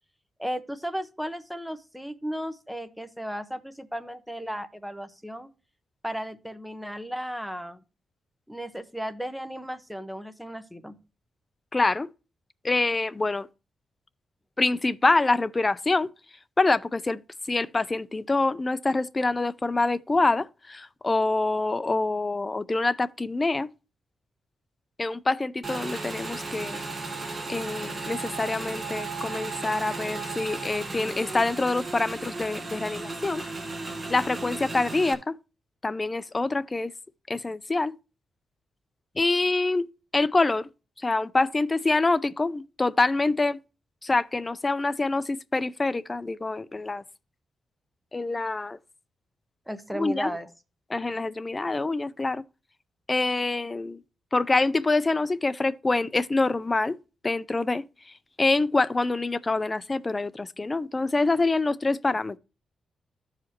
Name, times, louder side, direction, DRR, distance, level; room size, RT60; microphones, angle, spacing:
voice 1, 0.4-5.5 6.0-7.8 8.5-11.0 49.7-50.5, equal, ahead, 0.8 m, -35 dB
voice 2, 11.7-12.1 12.6-13.5 14.6-16.1 16.6-17.2 17.5-23.7 25.0-26.8 27.5-33.4 34.1-35.3 35.8-36.9 37.3-37.9 39.2-40.7 41.0-43.6 44.0-47.0 48.1-48.8 49.9-50.3 50.9-52.4 53.1-54.0 54.3-57.0 57.2-57.8 58.4-62.4, left 3 dB, 20° left, 0.4 m, -26 dB
Motorcycle / Engine, 25.6-35.1, right 3 dB, 25° right, 1.2 m, -35 dB
14.0 x 4.9 x 2.9 m
wide cardioid pair, 140°, 0 cm